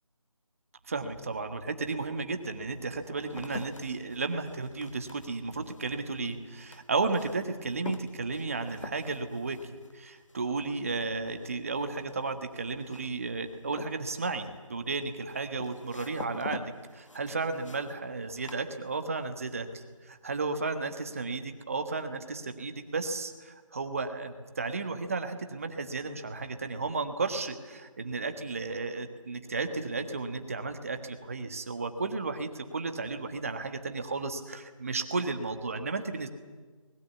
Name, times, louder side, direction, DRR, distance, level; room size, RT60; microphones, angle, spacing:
voice 1, 0.9-36.3, right 3 dB, 25° right, 8 dB, 1.5 m, -33 dB
sound 1, 1.4-1.5 2.2-19.3 19.6-20.2, left 2 dB, 60° left, 1.6 m, -47 dB
23.5 x 20.5 x 8.4 m, 1.3 s
figure-of-eight pair, 170°, 18 cm